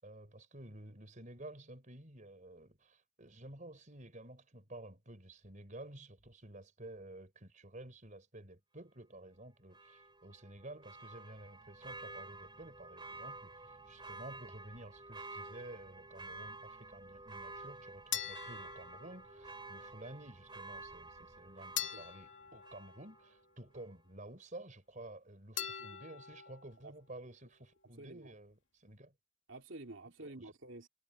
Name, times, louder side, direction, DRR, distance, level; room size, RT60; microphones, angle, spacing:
voice 1, 0.0-29.1 30.2-30.5, right 1 dB, 40° right, 4.5 m, -52 dB
Church bell, 9.7-23.4 23.7-23.8, right 2 dB, 25° right, 4.1 m, -50 dB
sound 1, 18.1-19.6 21.8-23.6 25.6-26.7, left 10 dB, 65° left, 3.7 m, -43 dB
voice 2, 28.0-28.3 29.5-30.9, right 2 dB, 75° right, 2.8 m, -50 dB
head